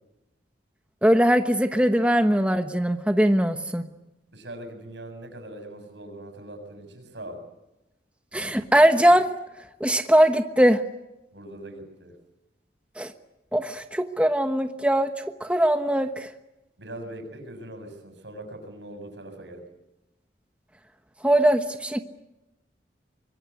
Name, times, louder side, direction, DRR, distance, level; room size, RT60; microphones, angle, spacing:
voice 1, 1.0-3.9 8.3-9.3 9.8-10.8 13.0-13.1 13.5-16.3 21.2-22.0, equal, 5° right, 6 dB, 1.2 m, -21 dB
voice 2, 4.3-7.4 11.3-12.1 16.8-19.7, right 1 dB, 85° right, 7 dB, 7.4 m, -41 dB
24.5 x 22.5 x 9.7 m, 0.95 s
head